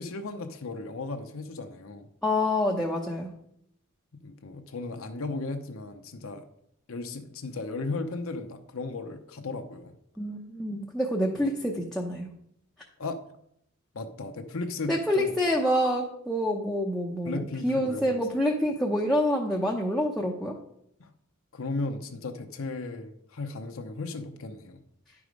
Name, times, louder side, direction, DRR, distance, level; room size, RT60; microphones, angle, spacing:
voice 1, 0.0-2.1 4.2-6.5 6.9-10.0 13.0-13.2 13.9-15.3 17.2-18.2 21.0-21.1 21.5-24.8, left 3 dB, 65° left, 0.7 m, -35 dB
voice 2, 2.2-3.3 10.2-12.3 14.9-20.6, left 1 dB, ahead, 0.7 m, -27 dB
10.0 x 4.8 x 5.2 m
head